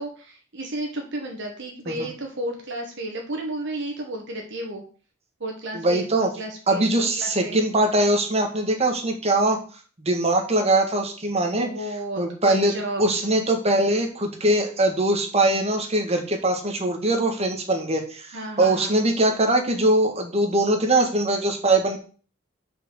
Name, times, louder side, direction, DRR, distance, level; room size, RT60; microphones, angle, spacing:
voice 1, 0.0-4.8 5.4-7.6 11.6-13.1 18.3-19.0, right 1 dB, 65° right, 1 dB, 1.6 m, -32 dB
voice 2, 5.7-6.3 6.7-9.6 10.0-11.7 12.2-12.7 13.0-22.0, right 1 dB, 30° right, 3 dB, 1.6 m, -22 dB
6.2 x 5.2 x 6.4 m, 0.39 s
head